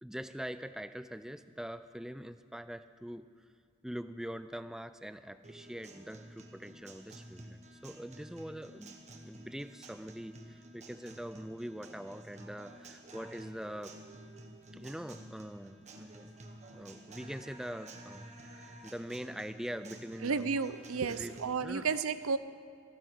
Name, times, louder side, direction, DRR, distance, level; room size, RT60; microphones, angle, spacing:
voice 1, 0.0-3.3 3.8-14.0 14.7-16.3 16.7-20.5 21.1-21.3 21.6-21.9, equal, ahead, 12 dB, 0.3 m, -43 dB
Guitar, 5.4-21.4, right 1 dB, 30° right, 1.2 m, -51 dB
voice 2, 20.2-22.4, right 5 dB, 70° right, 14 dB, 0.6 m, -32 dB
16.0 x 9.2 x 6.4 m, 2.2 s
head